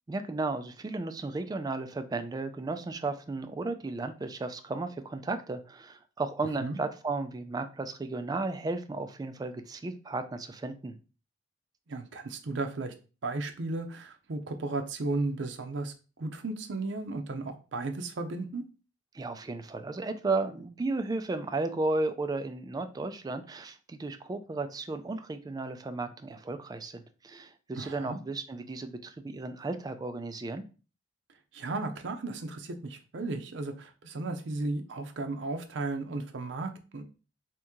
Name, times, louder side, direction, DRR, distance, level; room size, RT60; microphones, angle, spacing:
voice 1, 0.1-11.0 19.1-30.6, right 3 dB, 20° right, 8 dB, 0.3 m, -34 dB
voice 2, 11.9-12.9 13.2-15.9 16.2-18.6 27.7-28.2 31.5-37.0, right 3 dB, 75° right, 6 dB, 0.6 m, -34 dB
2.9 x 2.6 x 3.6 m, 0.35 s
head